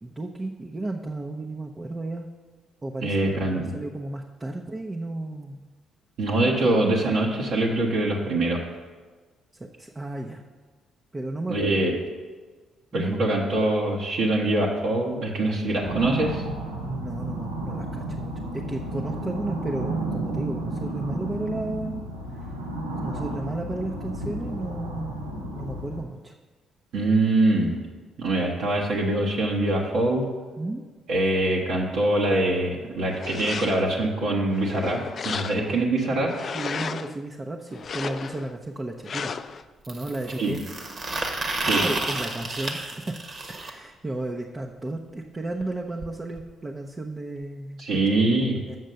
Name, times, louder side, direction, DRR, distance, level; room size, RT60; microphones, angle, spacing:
voice 1, 0.0-2.3 2.8-5.6 9.5-10.4 11.1-11.6 12.9-13.2 16.8-22.0 22.3-22.5 23.0-26.3 30.6-30.8 36.5-39.4 39.9-40.6 41.6-43.2 43.5-48.0 48.4-48.8, right 2 dB, 25° right, 1 dB, 0.7 m, -33 dB
voice 2, 3.0-3.7 6.2-8.6 11.5-11.9 12.9-16.4 26.9-27.8 28.2-30.3 31.1-36.3 40.4-40.6 41.6-41.8 47.8-48.6, right 2 dB, 65° right, -3 dB, 1.2 m, -23 dB
sound 1, 15.8-26.0, right 2 dB, 90° right, 0.8 m, -32 dB
sound 2, 33.1-34.0 34.5-35.8 36.3-37.2 37.7-38.5 39.1-39.6, left 6 dB, 50° left, 0.3 m, -34 dB
sound 3, 37.8-37.9 39.8-43.7 45.6-45.7 46.0-46.1 46.4-46.5 47.4-47.5, right 2 dB, 45° right, 1.3 m, -30 dB
8.0 x 6.4 x 5.3 m, 1.4 s
hypercardioid pair, 45°, 0 cm